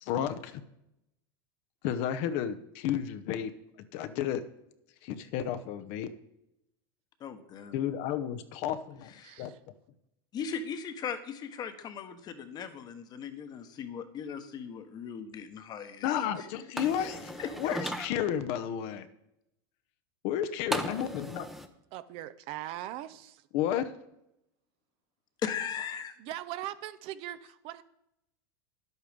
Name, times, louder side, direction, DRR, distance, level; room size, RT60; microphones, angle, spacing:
voice 1, 0.0-0.6 1.8-3.5 3.9-4.4 5.0-6.1 7.7-9.5 16.0-19.1 20.2-21.5 23.5-23.9, left 10 dB, 55° left, 11 dB, 0.8 m, -32 dB
voice 2, 7.2-7.8 9.2-9.4 10.3-16.5 16.8-17.1 17.4-17.7 25.4-26.1, left 7 dB, 30° left, 9 dB, 1.2 m, -38 dB
voice 3, 9.2-9.6 21.9-23.4 26.2-27.8, right 13 dB, 50° right, 13 dB, 0.7 m, -40 dB
sound 1, 16.8-18.1 20.7-21.7, right 1 dB, ahead, 0.8 m, -36 dB
10.5 x 8.2 x 5.2 m, 0.84 s
supercardioid pair, 130°, 13 cm